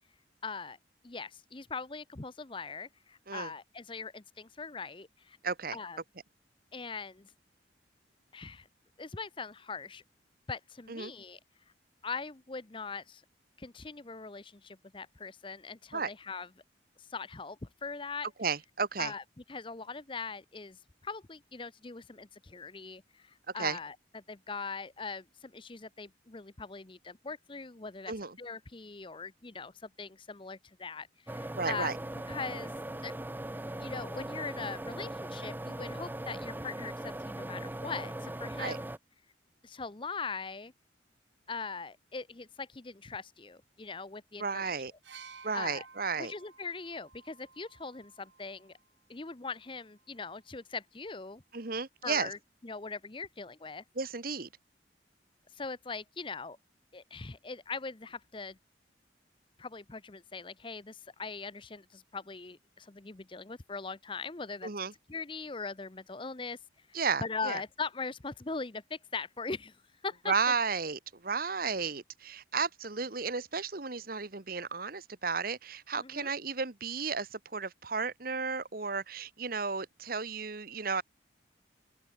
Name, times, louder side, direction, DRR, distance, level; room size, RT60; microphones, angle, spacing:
voice 1, 0.4-0.8 1.0-5.4 5.7-6.0 6.7-7.3 8.3-8.7 9.0-10.0 10.5-11.4 12.0-13.2 13.6-16.5 17.1-18.3 19.0-19.2 19.5-31.9 32.3-32.7 33.0-33.1 33.8-38.9 39.6-40.7 41.5-44.7 45.5-45.8 46.2-48.8 49.1-51.4 52.0-52.4 52.6-53.8 55.6-56.6 56.9-58.6 59.6-64.7 65.1-66.6 66.9-69.8 70.0-70.3 76.0-76.3, left 4 dB, 25° left, 0.8 m, -41 dB
voice 2, 5.4-5.8 10.9-11.1 15.9-16.1 18.4-19.1 23.6-23.8 28.1-28.4 31.6-32.0 38.6-38.8 44.4-44.9 45.4-46.3 51.5-52.3 53.9-54.5 64.6-64.9 66.9-67.6 70.3-81.0, right 5 dB, 50° right, 1.2 m, -33 dB
sound 1, 31.3-39.0, right 1 dB, 10° right, 0.5 m, -39 dB
sound 2, 45.0-48.8 49.9-50.0, right 5 dB, 75° right, 7.2 m, -54 dB
open air
head